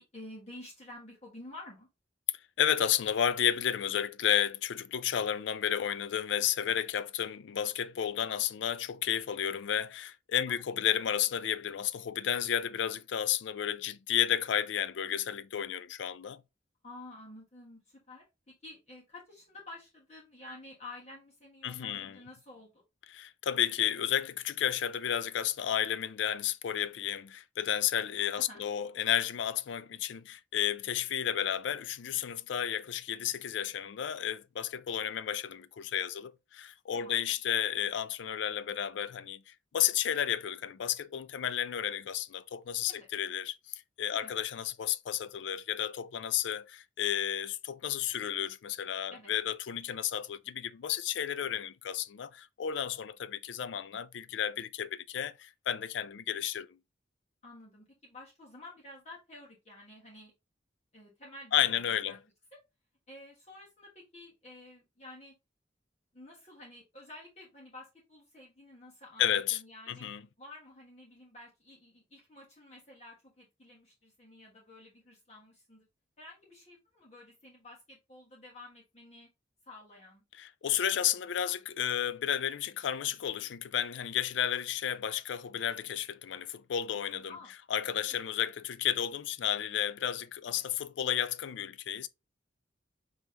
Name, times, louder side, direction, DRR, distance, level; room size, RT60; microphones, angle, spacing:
voice 1, 0.0-1.9 10.5-10.8 16.8-18.2 18.6-22.8 28.4-28.6 36.9-37.2 42.9-43.1 44.1-44.3 49.1-49.3 57.4-60.3 60.9-62.2 62.5-62.6 63.1-65.3 66.1-70.1 70.4-75.9 76.2-79.3 79.7-80.2 87.3-87.5 88.0-88.2 90.5-90.6, left 2 dB, 35° left, 1.3 m, -51 dB
voice 2, 2.6-16.4 21.6-22.2 23.1-56.8 61.5-62.2 69.2-69.6 69.9-70.2 80.4-87.3 87.7-92.1, left 10 dB, 75° left, 0.4 m, -32 dB
5.4 x 3.0 x 3.2 m
head